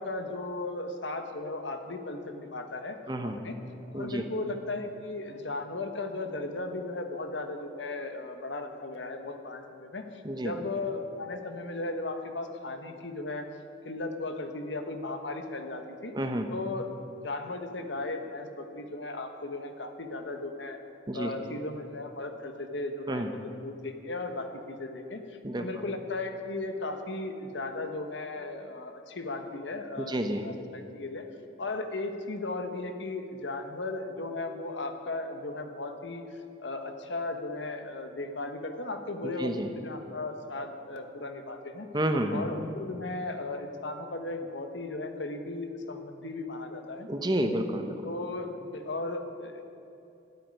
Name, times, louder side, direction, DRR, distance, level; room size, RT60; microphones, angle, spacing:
voice 1, 0.0-3.0 3.2-3.6 3.9-13.5 13.8-16.1 16.5-16.9 17.2-20.8 21.1-31.3 31.6-41.9 42.3-47.1 48.0-49.6, left 2 dB, 75° left, 6 dB, 1.3 m, -36 dB
voice 2, 3.1-3.4 3.9-4.2 10.2-10.5 16.1-16.5 21.1-21.3 23.1-23.3 25.4-25.7 30.0-30.4 39.2-39.7 41.9-42.5 47.1-48.0, right 1 dB, 25° right, 6 dB, 1.0 m, -30 dB
12.5 x 8.6 x 10.0 m, 2.8 s
head